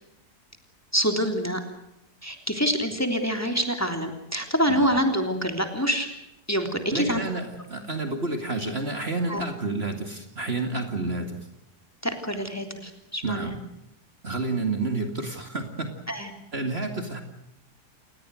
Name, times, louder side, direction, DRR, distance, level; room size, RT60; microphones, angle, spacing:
voice 1, 0.9-1.6 2.2-6.1 6.5-7.2 9.3-9.4 12.0-13.6 16.1-16.3, equal, 10° left, 5 dB, 3.4 m, -26 dB
voice 2, 6.9-11.4 13.2-13.6 14.2-15.9 16.5-17.2, right 3 dB, 40° right, 5 dB, 2.8 m, -30 dB
29.5 x 19.5 x 6.5 m, 0.84 s
omnidirectional pair, 1.7 m